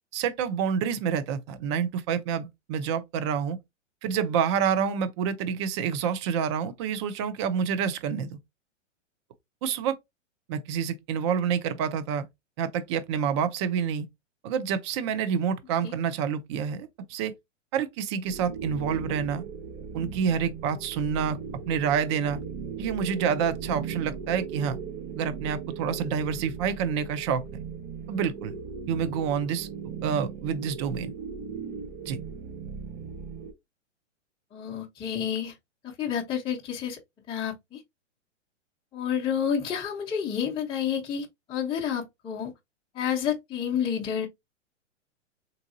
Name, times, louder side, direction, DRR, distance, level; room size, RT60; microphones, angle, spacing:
voice 1, 0.1-3.6 4.0-8.4 9.6-10.0 10.5-12.3 12.6-14.1 14.4-17.3 17.7-19.4 19.9-21.4 21.7-22.4 22.8-24.8 25.2-27.4 28.1-28.5 28.9-29.7 30.0-31.1 32.1-32.2, right 7 dB, 25° right, 0.3 m, -28 dB
sound 1, 18.2-33.5, right 6 dB, 45° right, 1.0 m, -38 dB
voice 2, 34.5-35.5 35.8-37.0 37.3-37.8 38.9-42.5 42.9-44.3, left 8 dB, 15° left, 0.7 m, -29 dB
3.7 x 2.6 x 2.5 m
hypercardioid pair, 125°, 38 cm